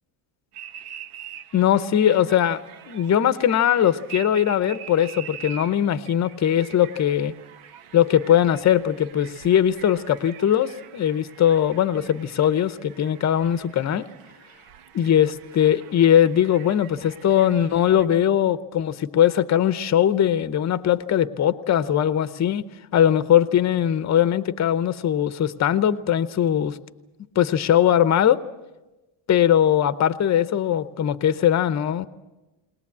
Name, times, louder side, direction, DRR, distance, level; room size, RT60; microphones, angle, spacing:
sound 1, 0.5-18.1, right 9 dB, 85° right, 1.2 m, -44 dB
voice 1, 1.5-2.6 2.9-7.3 7.9-14.1 14.9-22.7 22.9-26.8 27.4-28.4 29.3-32.1, left 10 dB, 35° left, 14 dB, 0.7 m, -20 dB
21.0 x 20.5 x 8.5 m, 1.1 s
cardioid pair, 150°, 50 cm